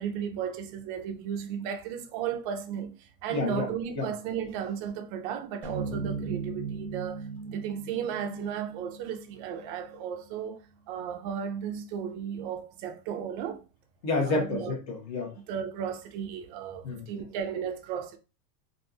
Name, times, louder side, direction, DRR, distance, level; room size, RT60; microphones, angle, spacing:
voice 1, 0.0-13.6 14.3-14.7 15.4-18.2, right 8 dB, 35° right, 0.4 m, -35 dB
voice 2, 3.3-3.7 3.9-4.1 14.0-15.3 16.8-17.0, left 3 dB, 40° left, 1.3 m, -29 dB
sound 1, 5.6-9.9, right 4 dB, 5° left, 0.8 m, -37 dB
3.3 x 2.6 x 2.7 m
supercardioid pair, 140°, 49 cm